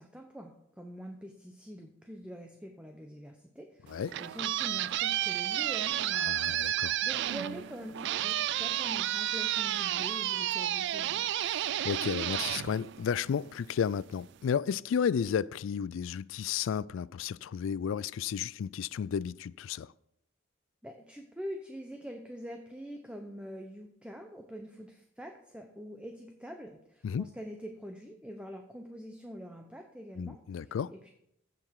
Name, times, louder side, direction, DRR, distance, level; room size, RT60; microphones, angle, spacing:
voice 1, 0.0-11.3 20.8-31.1, equal, 5° right, 0.7 m, -45 dB
sound 1, 3.9-13.5, right 12 dB, 60° right, 0.3 m, -31 dB
voice 2, 6.2-7.0 11.4-19.9 27.0-27.3 30.2-30.9, left 7 dB, 65° left, 0.3 m, -33 dB
15.5 x 5.8 x 4.7 m
head